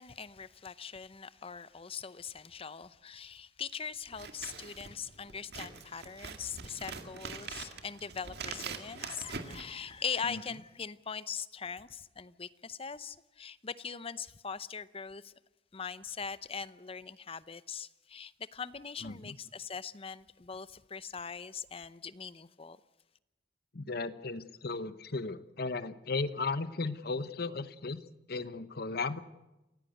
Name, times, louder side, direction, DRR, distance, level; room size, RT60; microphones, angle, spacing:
voice 1, 0.0-15.3 15.7-22.8, left 6 dB, 35° left, 0.7 m, -41 dB
Scissors, 4.1-10.3, right 5 dB, 65° right, 2.1 m, -44 dB
voice 2, 19.0-19.4 23.7-28.0 28.3-29.2, left 3 dB, 60° left, 1.0 m, -35 dB
28.0 x 15.5 x 8.0 m
head